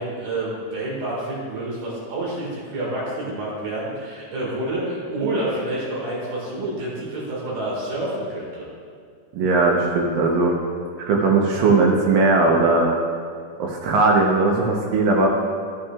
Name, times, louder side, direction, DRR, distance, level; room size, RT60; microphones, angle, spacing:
voice 1, 0.0-8.7, right 1 dB, 65° right, -5 dB, 3.4 m, -28 dB
voice 2, 9.3-10.6 11.0-12.9 13.6-15.3, right 3 dB, 85° right, -2 dB, 2.0 m, -18 dB
12.5 x 8.4 x 2.3 m, 2.2 s
omnidirectional pair, 5.3 m